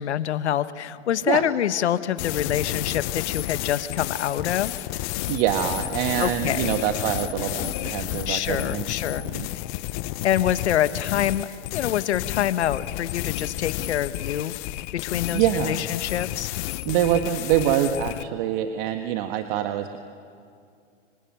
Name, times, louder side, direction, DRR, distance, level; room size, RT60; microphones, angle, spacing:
voice 1, 0.0-4.9 6.2-6.7 8.3-9.2 9.5-9.6 10.2-14.5 15.0-16.5, left 11 dB, 70° left, 13 dB, 1.3 m, -26 dB
sound 1, 2.2-18.3, left 18 dB, 40° left, 0.8 m, -31 dB
voice 2, 5.3-9.5 15.3-15.8 16.8-20.0, right 11 dB, 45° right, 6 dB, 1.6 m, -25 dB
26.0 x 25.0 x 9.1 m, 2.4 s
hypercardioid pair, 110°, 35 cm